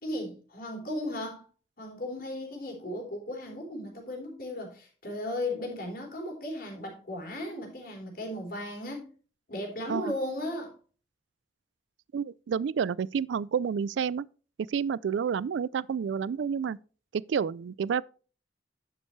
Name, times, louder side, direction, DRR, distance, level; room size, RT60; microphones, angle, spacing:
voice 1, 0.0-1.5 1.8-9.1 9.5-10.7, left 1 dB, 50° left, 4.0 m, -36 dB
voice 2, 12.1-14.3 14.6-16.8 17.1-18.0, right 7 dB, 80° right, 0.3 m, -29 dB
11.0 x 7.3 x 3.2 m
head